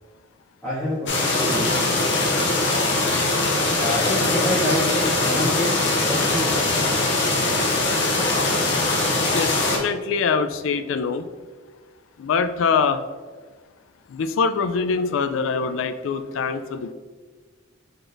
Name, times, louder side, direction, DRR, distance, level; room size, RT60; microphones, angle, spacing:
voice 1, 0.6-1.8 3.8-6.7, left 1 dB, 10° left, -14 dB, 1.4 m, -27 dB
sound 1, 1.1-9.8, left 2 dB, 65° left, 0.9 m, -21 dB
voice 2, 8.9-11.3 12.2-13.0 14.1-16.9, left 5 dB, 90° left, 11 dB, 0.3 m, -24 dB
3.9 x 3.8 x 3.4 m, 1.5 s
head